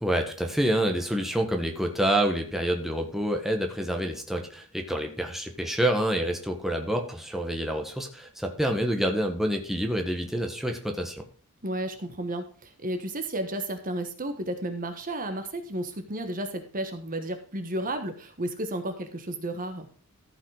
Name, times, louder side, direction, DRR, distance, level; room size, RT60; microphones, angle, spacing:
voice 1, 0.0-11.2, right 1 dB, ahead, 3 dB, 1.5 m, -27 dB
voice 2, 11.6-19.9, right 1 dB, 40° right, 7 dB, 1.3 m, -33 dB
14.5 x 5.7 x 4.9 m, 0.41 s
head